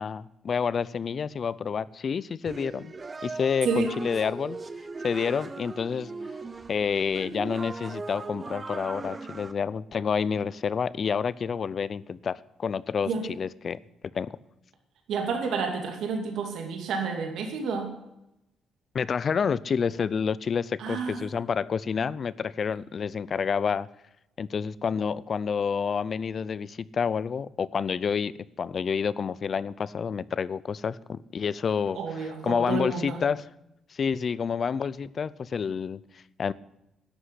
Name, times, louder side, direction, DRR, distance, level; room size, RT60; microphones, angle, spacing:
voice 1, 0.0-2.9 3.2-4.6 5.0-6.1 6.7-13.1 13.4-13.8 14.1-14.4 18.9-23.9 24.4-33.4 33.9-36.0 36.4-36.5, left 6 dB, 40° left, 19 dB, 0.5 m, -29 dB
sound 1, 2.5-9.5, right 3 dB, 25° right, 0.7 m, -39 dB
voice 2, 3.6-3.9 13.1-13.2 15.1-17.9 20.8-21.2 31.9-33.2, right 5 dB, 75° right, 3 dB, 2.5 m, -30 dB
11.5 x 8.1 x 9.9 m, 0.87 s
cardioid pair, 125°, 0 cm